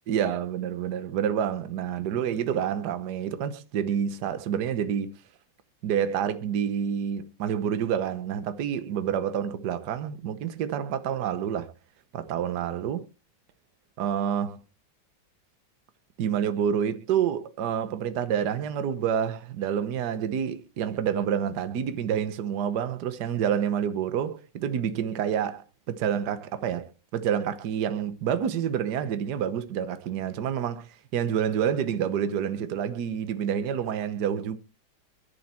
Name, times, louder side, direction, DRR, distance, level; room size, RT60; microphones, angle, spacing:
voice 1, 0.1-5.2 5.8-11.7 12.1-13.1 14.0-14.6 16.2-34.6, right 8 dB, 60° right, 1.5 m, -28 dB
11.0 x 8.5 x 4.4 m
omnidirectional pair, 2.2 m